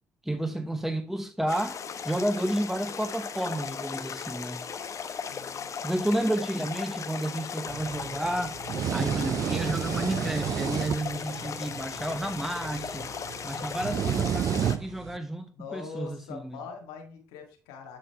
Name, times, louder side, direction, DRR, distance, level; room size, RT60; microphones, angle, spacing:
voice 1, 0.2-1.8 2.0-4.7 5.8-8.6 8.9-13.1 13.4-16.6, right 1 dB, 5° right, 0.8 m, -31 dB
sound 1, 1.5-14.8, left 6 dB, 45° left, 0.9 m, -37 dB
voice 2, 5.3-5.7 6.2-6.3 15.5-18.0, left 5 dB, 80° left, 1.7 m, -43 dB
sound 2, 7.7-15.2, right 10 dB, 50° right, 0.3 m, -32 dB
8.5 x 3.9 x 4.5 m
hypercardioid pair, 55°, 7 cm